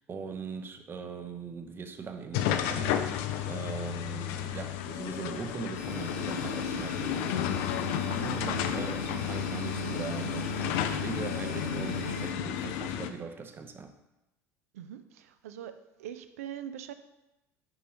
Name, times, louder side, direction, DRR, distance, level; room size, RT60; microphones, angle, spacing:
voice 1, 0.0-3.1 3.5-13.9, right 5 dB, 25° right, 7 dB, 0.7 m, -40 dB
sound 1, 2.3-13.1, left 10 dB, 55° left, 0.4 m, -32 dB
sound 2, 5.7-12.3, equal, 80° left, 0.9 m, -39 dB
voice 2, 14.7-16.9, right 10 dB, 65° right, 10 dB, 0.4 m, -42 dB
8.3 x 5.4 x 2.8 m, 0.95 s
figure-of-eight pair, 65°, 8 cm